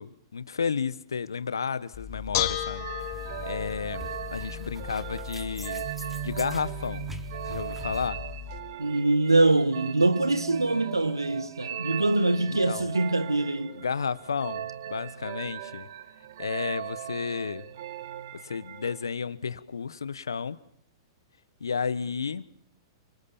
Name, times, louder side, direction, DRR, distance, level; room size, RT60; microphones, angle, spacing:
voice 1, 0.0-2.9 3.4-7.1 7.4-8.2 12.4-12.9 13.7-15.9 16.4-17.6 18.4-20.6 21.6-22.4, left 6 dB, 75° left, 1.3 m, -32 dB
Bell / Dishes pots and pans, 1.9-8.6, left 11 dB, 45° left, 4.1 m, -36 dB
sound 1, 2.8-19.2, right 11 dB, 60° right, 2.2 m, -39 dB
sound 2, 3.0-8.1, equal, 5° right, 3.8 m, -47 dB
voice 2, 8.8-13.8, right 2 dB, 90° right, 1.8 m, -24 dB
29.0 x 25.5 x 7.2 m
figure-of-eight pair, 105°, 2 cm